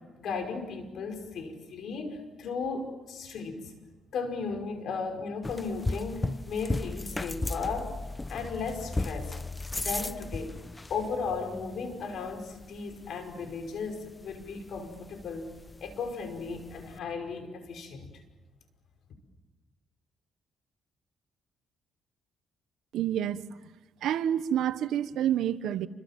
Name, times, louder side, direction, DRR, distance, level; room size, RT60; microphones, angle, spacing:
voice 1, 0.1-3.7 4.1-7.9 8.3-9.3 9.8-10.6 10.9-15.5 15.8-18.1, left 4 dB, 70° left, 6 dB, 5.4 m, -35 dB
sound 1, 5.4-17.0, left 2 dB, 15° left, 0.8 m, -37 dB
voice 2, 22.9-23.5 24.0-25.9, right 10 dB, 80° right, 13 dB, 1.2 m, -28 dB
29.0 x 25.5 x 7.6 m, 1.3 s
cardioid pair, 90°, 0 cm